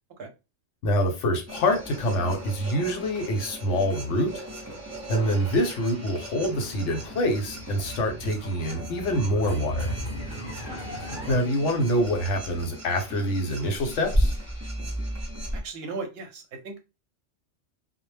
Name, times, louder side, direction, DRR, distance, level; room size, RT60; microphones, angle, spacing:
voice 1, 0.8-4.3 5.1-9.9 11.3-14.3, equal, 80° left, 1.0 m, -26 dB
sound 1, 1.5-15.6, right 1 dB, 20° right, 0.5 m, -35 dB
sound 2, 6.4-11.4, equal, 55° left, 0.7 m, -36 dB
voice 2, 15.5-16.8, right 4 dB, 65° right, 0.8 m, -37 dB
2.1 x 2.0 x 3.2 m
omnidirectional pair, 1.2 m